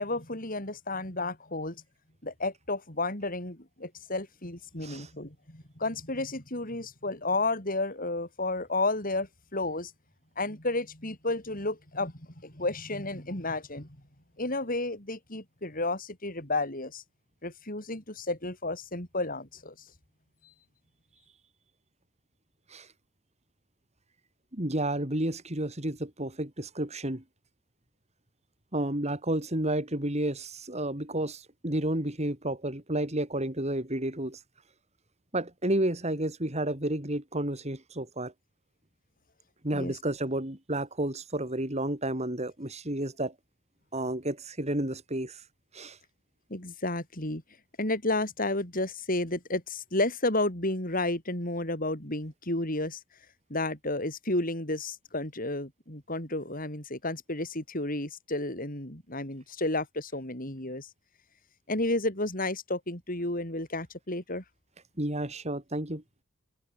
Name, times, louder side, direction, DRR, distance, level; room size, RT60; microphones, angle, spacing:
voice 1, 0.0-1.8 2.2-9.9 10.4-14.0 14.4-17.0 17.4-19.7 39.7-39.9 46.5-47.4 47.8-53.0 53.5-60.9 61.7-64.4, left 2 dB, 40° left, 6.7 m, -32 dB
voice 2, 24.5-27.2 28.7-34.4 35.3-38.3 39.6-43.3 43.9-45.4 45.7-46.0 65.0-66.0, right 1 dB, 30° right, 3.7 m, -31 dB
open air
head